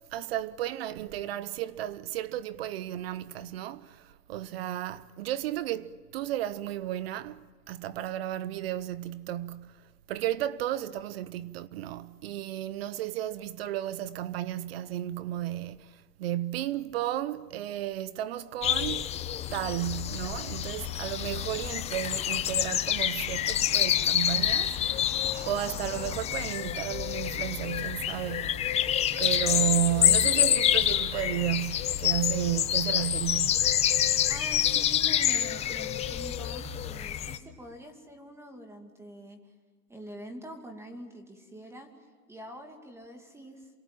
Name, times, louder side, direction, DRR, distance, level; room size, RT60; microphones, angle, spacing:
voice 1, 0.1-19.2 19.5-25.1 25.5-28.7 29.2-33.8, right 13 dB, 40° right, 0.8 m, -33 dB
sound 1, 18.6-37.4, left 10 dB, 15° left, 0.8 m, -27 dB
voice 2, 34.3-39.4 39.9-41.9 42.3-43.7, equal, 5° right, 2.4 m, -45 dB
28.0 x 25.5 x 7.6 m
hypercardioid pair, 145°, 48 cm